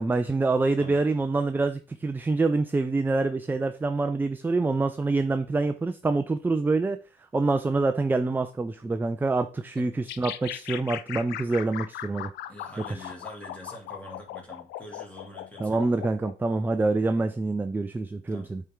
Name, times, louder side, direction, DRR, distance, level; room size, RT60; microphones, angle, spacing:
voice 1, 0.0-7.0 7.3-12.3 15.6-18.6, right 3 dB, 10° right, 0.4 m, -26 dB
sound 1, 10.1-16.3, left 12 dB, 80° left, 0.5 m, -38 dB
voice 2, 12.5-15.9 18.3-18.6, left 1 dB, 10° left, 2.4 m, -44 dB
8.2 x 4.4 x 3.7 m
cardioid pair, 110°, 17 cm